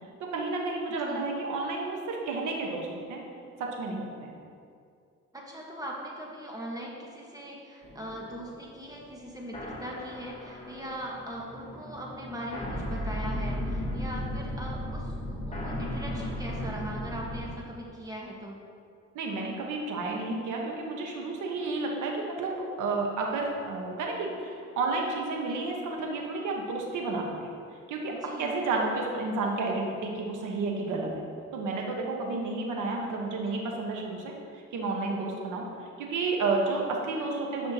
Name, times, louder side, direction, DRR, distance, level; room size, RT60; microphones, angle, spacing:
voice 1, 0.2-3.2 3.6-4.4 19.1-27.5 27.9-28.1 28.4-31.2 31.5-35.7 36.0-37.7, right 3 dB, 85° right, 0 dB, 1.4 m, -31 dB
voice 2, 5.3-18.6 28.1-28.6, equal, 10° right, -3 dB, 1.4 m, -40 dB
sound 1, 7.8-17.5, left 1 dB, 20° left, 1.5 m, -35 dB
10.5 x 5.7 x 3.0 m, 2.3 s
cardioid pair, 90°, 30 cm